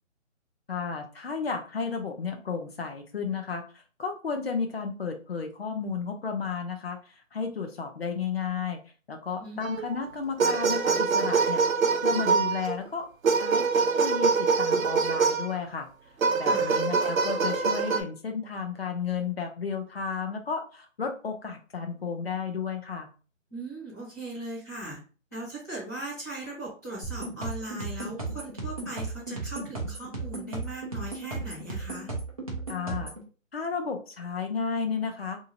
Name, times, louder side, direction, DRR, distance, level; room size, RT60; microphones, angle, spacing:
voice 1, 0.7-8.8 9.1-11.6 12.0-13.1 13.4-15.9 16.4-23.1 32.7-33.1 33.5-35.4, left 5 dB, 50° left, 4 dB, 0.6 m, -33 dB
sound 1, 9.6-10.0 10.4-12.8 13.2-15.5 16.2-18.0, right 5 dB, 85° right, 0.7 m, -24 dB
voice 2, 16.4-16.8 23.5-25.0 25.3-32.1, right 1 dB, 15° left, -9 dB, 0.8 m, -39 dB
sound 2, 27.0-33.2, right 3 dB, 30° right, 0.6 m, -35 dB
2.7 x 2.5 x 2.7 m, 0.36 s
hypercardioid pair, 165°, 39 cm